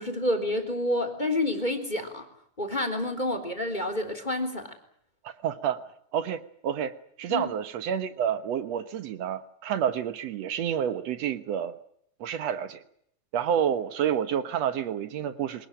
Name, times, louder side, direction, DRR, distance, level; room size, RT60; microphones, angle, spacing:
voice 1, 0.0-2.2 2.6-4.7 7.3-7.5, left 1 dB, 10° left, 9 dB, 3.0 m, -29 dB
voice 2, 5.2-5.8 6.1-11.7 12.2-12.8 13.3-15.7, right 9 dB, 75° right, 11 dB, 1.5 m, -29 dB
25.0 x 19.0 x 9.0 m, 0.69 s
omnidirectional pair, 4.7 m